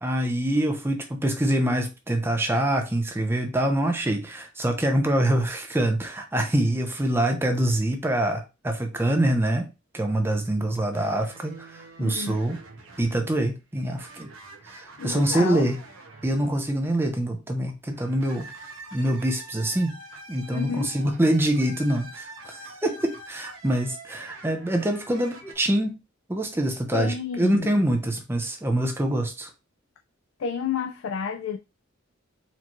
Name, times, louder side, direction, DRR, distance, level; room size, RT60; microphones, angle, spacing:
voice 1, 0.0-9.7 9.9-12.6 13.0-14.3 14.6-15.8 16.2-18.5 18.9-20.0 20.3-26.0 26.3-29.5, right 1 dB, 10° right, 0.5 m, -25 dB
sound 1, 10.9-16.9 17.9-25.5, right 2 dB, 80° right, 0.9 m, -45 dB
voice 2, 12.0-12.4 15.0-15.7 20.5-20.9 26.9-27.7 30.4-31.6, left 6 dB, 80° left, 0.4 m, -30 dB
4.3 x 2.6 x 2.9 m
head